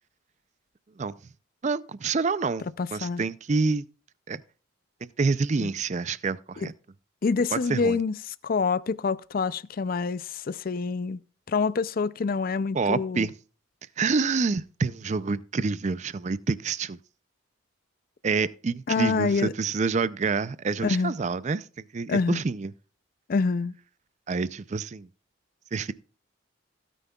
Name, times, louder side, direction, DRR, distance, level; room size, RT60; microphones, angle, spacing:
voice 1, 1.6-2.7 2.9-3.9 4.3-4.4 5.2-6.7 7.7-8.0 12.7-13.3 14.0-17.0 18.2-21.7 21.9-22.7 24.3-25.1 25.7-25.9, right 4 dB, 35° right, 0.4 m, -27 dB
voice 2, 2.8-3.2 5.6-5.7 6.6-6.7 7.2-11.2 11.5-13.3 18.9-19.5 20.8-21.1 22.1-22.4 23.3-23.8, left 4 dB, 45° left, 0.4 m, -26 dB
16.5 x 9.2 x 2.3 m
head